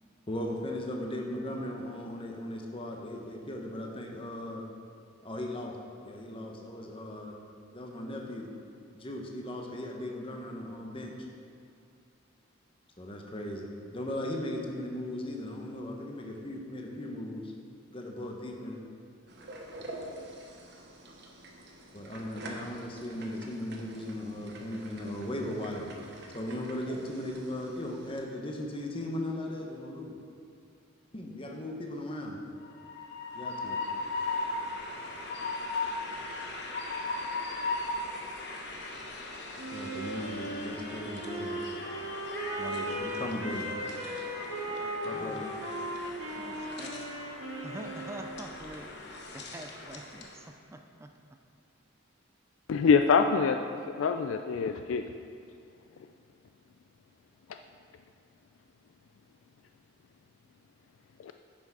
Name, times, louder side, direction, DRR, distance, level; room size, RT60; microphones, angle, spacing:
voice 1, 0.3-4.6 5.2-5.8 6.0-7.3 7.7-8.5 8.9-11.2 13.0-17.5 17.9-18.8 21.9-25.9 26.3-30.2 31.1-32.4 33.3-33.8 39.7-41.6 42.6-43.8 45.0-45.4, left 1 dB, 25° left, 1 dB, 0.9 m, -37 dB
sound 1, 19.3-28.2, right 1 dB, 55° right, 1.0 m, -47 dB
Train, 32.6-50.4, left 3 dB, 55° left, 1.0 m, -38 dB
Wind instrument woodwind instrument, 39.6-48.4, right 1 dB, 80° right, 1.7 m, -37 dB
voice 2, 44.8-45.4 46.4-46.9 47.6-48.9 49.3-51.1, right 1 dB, 15° right, 5 dB, 0.3 m, -45 dB
voice 3, 52.7-53.6 54.0-55.0 61.2-61.3, left 5 dB, 70° left, 7 dB, 0.3 m, -24 dB
9.8 x 6.0 x 4.8 m, 2.3 s
head